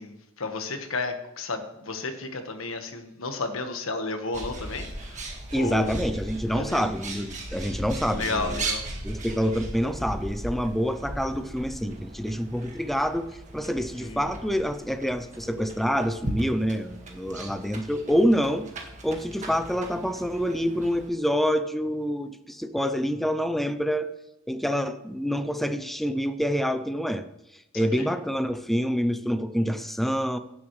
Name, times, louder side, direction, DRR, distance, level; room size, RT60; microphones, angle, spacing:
voice 1, 0.0-5.3 5.6-6.0 6.5-6.8 8.1-8.9 14.0-14.3 27.7-28.1, left 3 dB, 85° left, 6 dB, 1.4 m, -32 dB
Bird, 4.3-21.1, right 1 dB, 35° right, 1.7 m, -38 dB
voice 2, 5.5-8.6 9.0-18.7 19.0-24.1 24.5-27.2 27.7-30.4, equal, ahead, 9 dB, 0.4 m, -27 dB
16.5 x 7.3 x 3.2 m, 0.91 s
head